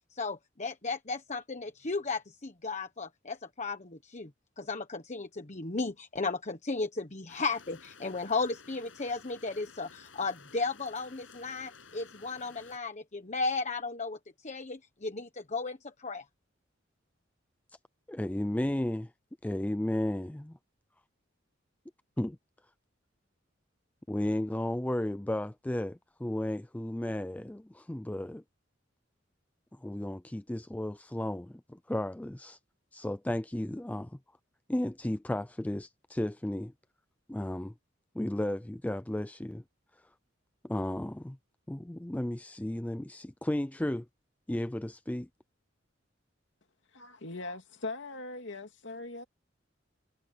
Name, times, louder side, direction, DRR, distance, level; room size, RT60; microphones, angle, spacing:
voice 1, 0.1-4.3 4.6-14.2 14.4-16.2, left 3 dB, 40° left, 1.2 m, -35 dB
sound 1, 7.3-12.8, left 5 dB, 90° left, 6.9 m, -54 dB
voice 2, 18.1-19.1 19.4-20.6 22.2-22.4 24.1-28.4 29.7-32.6 32.9-34.2 34.7-36.7 37.3-37.7 38.1-39.6 40.6-41.4 41.7-44.1 44.5-45.3, left 1 dB, 10° left, 0.4 m, -34 dB
voice 3, 46.9-49.2, left 2 dB, 65° left, 2.8 m, -40 dB
head